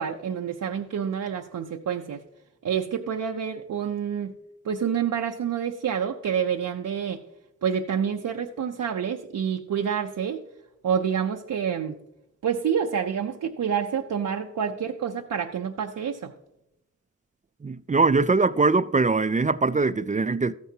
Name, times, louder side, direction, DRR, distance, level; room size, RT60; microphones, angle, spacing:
voice 1, 0.0-2.2 2.6-4.3 4.6-7.2 7.6-10.4 10.8-12.0 12.4-16.3, right 7 dB, 85° right, 0.6 m, -28 dB
voice 2, 17.6-20.5, right 3 dB, 25° right, 0.3 m, -22 dB
13.5 x 9.4 x 2.8 m
cardioid pair, 45°, 30 cm